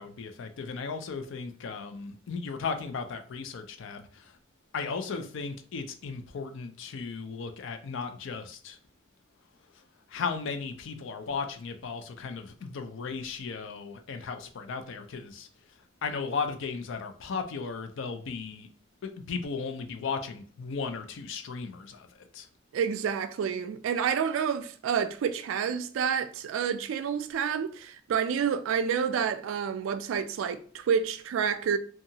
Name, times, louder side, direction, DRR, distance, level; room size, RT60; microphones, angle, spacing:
voice 1, 0.0-4.4 4.7-8.8 10.1-15.5 16.0-18.7 19.0-22.5, left 5 dB, 65° left, 0.4 m, -36 dB
voice 2, 22.7-31.8, right 7 dB, 75° right, 0.3 m, -29 dB
2.7 x 2.4 x 2.7 m
head